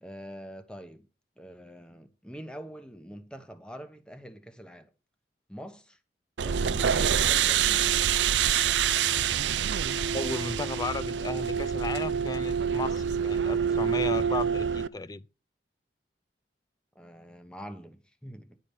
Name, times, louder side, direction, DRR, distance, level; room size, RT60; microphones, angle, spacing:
voice 1, 0.0-1.1 1.4-4.9 5.5-6.0 6.4-8.1 16.9-18.6, equal, 5° left, 1.1 m, -44 dB
sound 1, 6.4-14.9, right 8 dB, 90° right, 0.5 m, -26 dB
voice 2, 10.1-15.2, left 3 dB, 20° left, 0.4 m, -34 dB
11.0 x 5.0 x 7.3 m
head